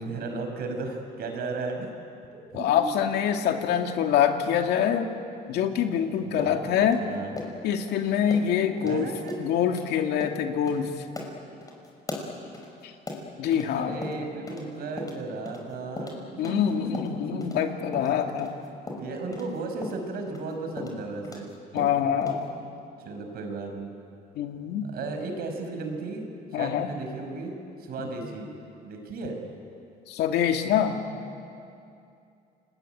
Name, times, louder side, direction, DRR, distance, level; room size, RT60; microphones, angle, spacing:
voice 1, 0.0-1.9 2.3-2.7 6.2-6.7 7.0-7.3 8.8-9.4 13.7-17.6 18.9-21.5 21.7-21.9 23.0-23.9 24.8-28.5 28.8-29.4, right 3 dB, 65° right, 5 dB, 5.4 m, -35 dB
voice 2, 2.5-5.1 5.5-7.0 7.6-9.1 9.4-10.9 12.8-12.9 13.4-14.0 16.4-18.5 21.7-22.5 24.4-24.9 26.5-26.9 28.0-28.1 30.1-31.0, left 9 dB, 80° left, 4 dB, 2.3 m, -25 dB
sound 1, 6.4-7.9 8.3-8.5 8.8-8.9 9.3-9.4 9.7-9.9 10.2-10.4 10.7-10.8 11.2-13.7 14.0-14.7 15.0-17.6 17.9-21.5 21.8-22.4, left 2 dB, 20° left, 5.7 m, -38 dB
29.0 x 20.5 x 9.2 m, 2.6 s
cardioid pair, 110°, 17 cm